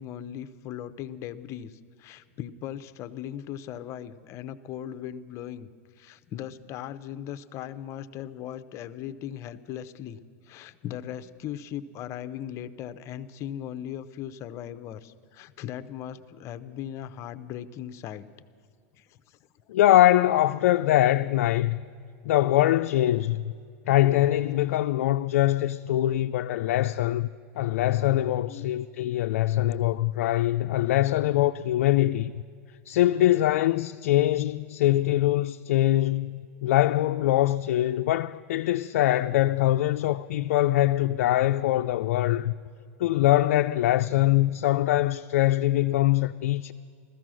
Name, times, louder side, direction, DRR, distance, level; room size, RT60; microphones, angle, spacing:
voice 1, 0.0-5.7 6.0-18.3 18.9-19.4 28.5-28.7, left 10 dB, 40° left, 0.7 m, -38 dB
voice 2, 19.7-21.8 22.3-23.4 23.9-27.3 27.6-32.3 32.9-42.5 43.0-46.7, left 14 dB, 75° left, 0.3 m, -23 dB
15.5 x 14.0 x 6.2 m
supercardioid pair, 125°, 8 cm